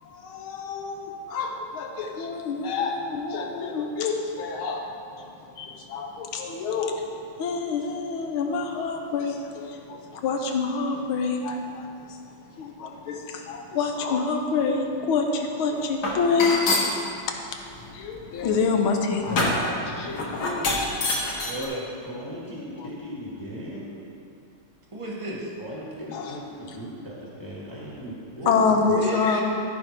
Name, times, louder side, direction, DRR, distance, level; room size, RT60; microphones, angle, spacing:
voice 1, 0.0-4.8 5.2-7.0 7.4-12.2 12.6-16.9 17.3-17.6 17.9-20.2 21.3-21.5 26.1-26.3 28.5-29.4, left 4 dB, 75° left, 3 dB, 1.6 m, -27 dB
sound 1, 16.0-16.9 17.7-21.6, left 2 dB, 50° left, 1.7 m, -26 dB
voice 2, 20.0-20.8 22.0-23.9 25.6-28.9, equal, 15° left, -6 dB, 1.3 m, -37 dB
voice 3, 21.4-21.9 24.9-25.5 28.4-29.4, right 1 dB, 20° right, -3 dB, 1.0 m, -32 dB
13.5 x 5.2 x 4.5 m, 2.6 s
omnidirectional pair, 2.4 m